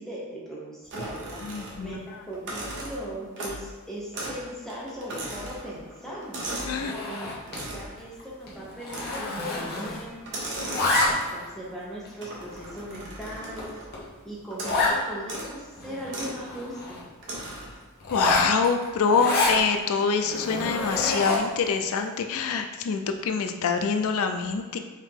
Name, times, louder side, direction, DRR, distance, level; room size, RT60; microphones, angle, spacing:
voice 1, 0.0-1.4 1.8-6.5 7.2-7.4 7.7-10.5 11.3-13.8 14.2-17.0, equal, ahead, -6 dB, 1.0 m, -39 dB
sound 1, 0.9-2.0 2.3-3.7 4.1-4.4 4.7-6.8 7.5-8.0 8.9-9.4 10.2-11.5 12.2-13.9 14.5-14.9 15.2-15.5 16.1-16.4 17.2-17.8, right 1 dB, 55° right, 1.0 m, -37 dB
voice 2, 1.5-2.0 6.7-6.9 18.1-24.8, left 5 dB, 65° left, 6 dB, 0.4 m, -25 dB
Zipper (clothing), 6.7-7.7 8.0-8.2 8.5-10.2 10.4-11.4 12.0-12.1 12.7-12.8 13.2-13.3 13.6-13.7 13.9-14.0 14.6-15.0 15.4-15.5 15.7-17.0 18.0-19.6 20.2-21.6, left 2 dB, 45° left, 1.0 m, -28 dB
4.7 x 2.8 x 3.6 m, 1.4 s
head